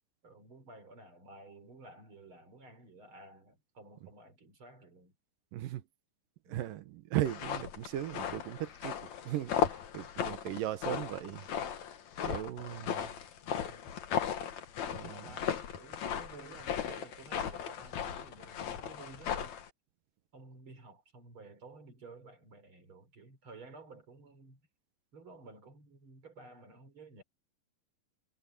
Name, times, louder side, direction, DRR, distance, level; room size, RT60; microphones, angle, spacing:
voice 1, 0.2-5.1 6.4-6.6 12.8-13.9 15.1-19.6 20.3-24.6 25.1-27.2, right 3 dB, 35° right, 4.5 m, -54 dB
voice 2, 5.5-5.8 6.5-9.0 9.3-11.5 12.2-13.1 14.9-15.4, right 13 dB, 75° right, 2.7 m, -37 dB
sound 1, 7.3-19.7, left 8 dB, 60° left, 2.7 m, -37 dB
omnidirectional pair, 4.1 m